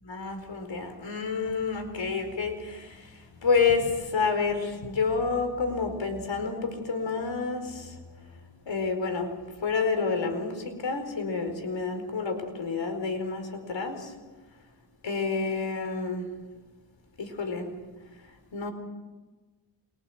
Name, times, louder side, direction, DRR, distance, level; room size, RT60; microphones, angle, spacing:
voice 1, 0.1-2.9 3.4-7.8 8.7-9.3 9.6-14.0 15.0-16.3 17.2-17.7 18.5-18.7, left 4 dB, 80° left, 7 dB, 4.5 m, -29 dB
27.5 x 23.5 x 7.9 m, 1.2 s
cardioid pair, 75°, 44 cm